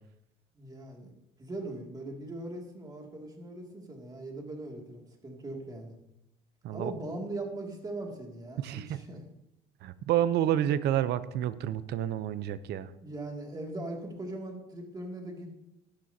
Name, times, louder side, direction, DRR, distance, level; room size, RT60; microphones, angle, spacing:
voice 1, 0.5-1.1 1.4-6.0 6.7-9.2 13.0-15.5, right 2 dB, 20° right, 1 dB, 2.4 m, -40 dB
voice 2, 8.6-9.0 9.8-12.9, right 11 dB, 65° right, 14 dB, 0.7 m, -29 dB
15.0 x 10.5 x 2.8 m, 0.85 s
cardioid pair, 125°, 18 cm